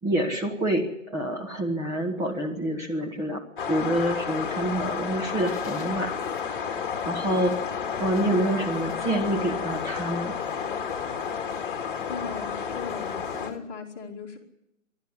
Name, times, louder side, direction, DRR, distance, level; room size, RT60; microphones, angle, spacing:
voice 1, 0.0-3.4 3.7-6.1 7.1-7.6 8.0-10.3, right 1 dB, 10° right, -1 dB, 1.9 m, -27 dB
sound 1, 3.6-13.5, left 7 dB, 40° left, 2.0 m, -31 dB
sound 2, 4.3-13.6, left 5 dB, 10° left, 1.6 m, -44 dB
voice 2, 11.6-14.4, left 5 dB, 25° left, -4 dB, 2.6 m, -39 dB
27.5 x 12.0 x 9.9 m, 0.81 s
figure-of-eight pair, 145°, 39 cm